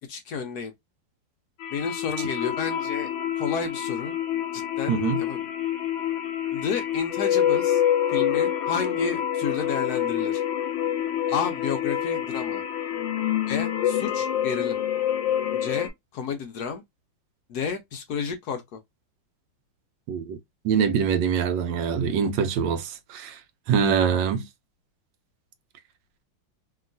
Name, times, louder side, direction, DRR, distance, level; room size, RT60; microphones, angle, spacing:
voice 1, 0.1-0.7 1.7-3.1 3.4-4.1 4.5-5.5 6.5-7.8 8.1-10.4 11.3-12.6 13.4-14.8 15.5-16.8 17.5-18.8, left 6 dB, 65° left, 1.0 m, -31 dB
sound 1, 1.6-15.9, left 10 dB, 90° left, 1.5 m, -27 dB
voice 2, 20.1-20.4 20.6-23.4 23.7-24.4, right 7 dB, 75° right, 1.2 m, -24 dB
2.9 x 2.8 x 2.5 m
omnidirectional pair, 2.1 m